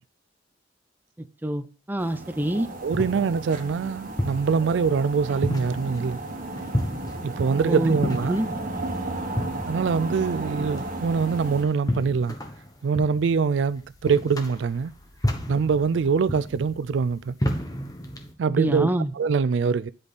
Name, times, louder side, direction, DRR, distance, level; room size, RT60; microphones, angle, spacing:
voice 1, 1.4-2.7 7.6-8.0 8.2-8.5 18.5-19.1, right 1 dB, 10° right, 0.5 m, -26 dB
sound 1, 2.0-11.6, right 2 dB, 50° right, 1.3 m, -34 dB
sound 2, 2.4-18.3, equal, 20° left, 1.1 m, -32 dB
voice 2, 2.8-6.2 7.2-8.4 9.7-12.3 12.8-14.9 15.5-17.4 18.4-19.9, right 5 dB, 75° right, 0.4 m, -24 dB
9.8 x 5.2 x 4.1 m
head